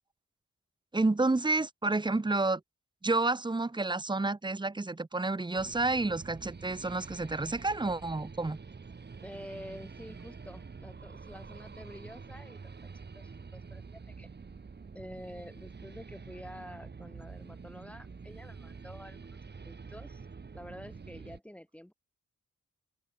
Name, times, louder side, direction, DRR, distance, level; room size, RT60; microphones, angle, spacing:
voice 1, 0.9-2.6 3.0-8.6, right 2 dB, 15° right, 0.7 m, -30 dB
sound 1, 5.6-21.4, right 5 dB, 35° right, 1.0 m, -47 dB
voice 2, 9.2-14.3 14.9-20.2 20.5-21.9, equal, 5° left, 2.4 m, -48 dB
cardioid pair, 55°, 30 cm